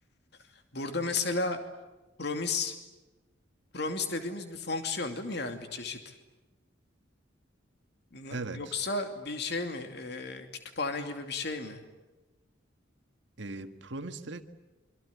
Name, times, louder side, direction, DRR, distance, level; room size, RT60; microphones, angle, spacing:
voice 1, 0.7-1.6 2.2-2.7 3.7-6.1 8.1-10.5 10.8-11.8, left 3 dB, 55° left, 6 dB, 2.6 m, -33 dB
voice 2, 8.3-8.8 13.4-14.4, right 2 dB, 65° right, 8 dB, 1.8 m, -38 dB
28.0 x 24.0 x 8.5 m, 1.1 s
head